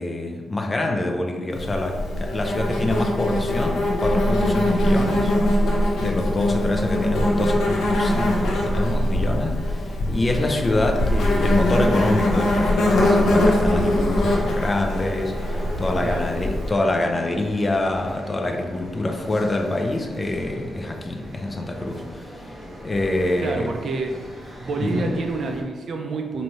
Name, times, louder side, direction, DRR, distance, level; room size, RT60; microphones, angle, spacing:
voice 1, 0.0-5.3 6.0-22.5 22.8-23.7 24.8-25.1, left 2 dB, 20° left, 3 dB, 0.4 m, -25 dB
Insect, 1.5-16.7, left 1 dB, 75° left, 0.7 m, -22 dB
sound 1, 10.2-25.6, equal, 25° right, 1.1 m, -39 dB
voice 2, 23.4-24.1 24.6-26.4, right 3 dB, 55° right, 4 dB, 0.4 m, -28 dB
4.6 x 2.6 x 3.0 m, 1.4 s
wide cardioid pair, 135°, 0 cm